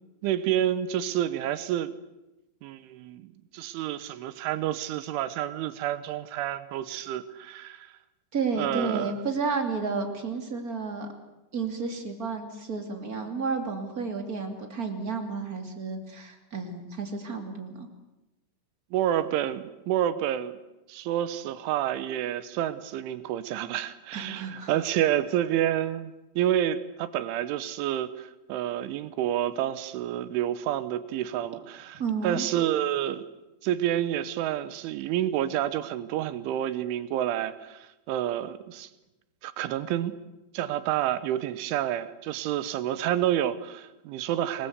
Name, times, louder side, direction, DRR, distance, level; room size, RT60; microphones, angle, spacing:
voice 1, 0.2-1.9 2.6-7.9 8.6-9.1 18.9-20.5 20.9-33.3 33.6-38.9 39.4-40.1 40.5-44.7, right 11 dB, 75° right, 13 dB, 3.3 m, -29 dB
voice 2, 8.3-11.1 11.5-17.9 24.1-24.7 32.0-32.5, right 4 dB, 25° right, 4 dB, 1.9 m, -31 dB
26.0 x 21.5 x 8.1 m, 1.0 s
omnidirectional pair, 5.8 m